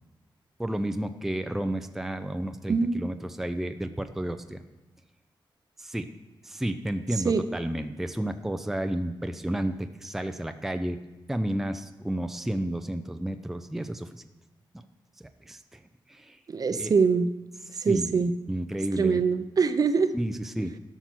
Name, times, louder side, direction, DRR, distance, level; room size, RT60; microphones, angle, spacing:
voice 1, 0.6-4.6 5.8-6.1 6.4-11.0 11.3-14.2 15.2-15.8 16.1-16.4 16.7-16.9 17.7-19.2 20.1-20.8, right 1 dB, 5° right, 7 dB, 0.5 m, -32 dB
voice 2, 2.7-3.0 7.2-7.5 16.5-17.3 17.7-18.3 18.9-20.1, right 5 dB, 45° right, 10 dB, 0.6 m, -23 dB
12.5 x 5.9 x 6.0 m, 1.1 s
wide cardioid pair, 140°, 9 cm